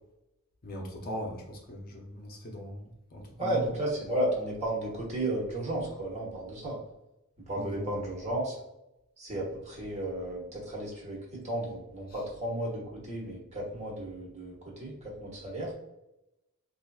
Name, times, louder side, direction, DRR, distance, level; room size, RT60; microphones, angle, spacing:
voice 1, 0.6-3.7 7.5-7.9, equal, 40° left, 0 dB, 0.6 m, -40 dB
voice 2, 3.4-6.8 7.5-8.6 9.2-14.9 15.2-15.7, right 1 dB, 30° right, -3 dB, 1.1 m, -33 dB
4.4 x 2.6 x 2.3 m, 0.86 s
head